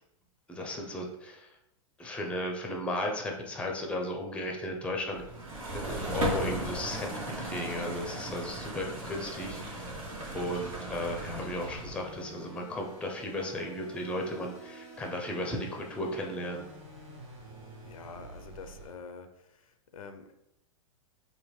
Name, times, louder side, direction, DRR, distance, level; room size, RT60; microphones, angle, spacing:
voice 1, 0.5-1.5 2.0-5.2 5.7-10.1 10.3-16.6, left 1 dB, 5° left, 1 dB, 0.4 m, -35 dB
sound 1, 5.1-12.1, right 1 dB, 80° right, 1.2 m, -37 dB
sound 2, 9.8-18.9, right 1 dB, 35° right, 1.4 m, -49 dB
voice 2, 17.8-19.3 19.5-19.7 19.9-20.3, left 5 dB, 85° left, 8 dB, 0.4 m, -46 dB
3.5 x 2.1 x 3.0 m, 0.85 s
hypercardioid pair, 120°, 17 cm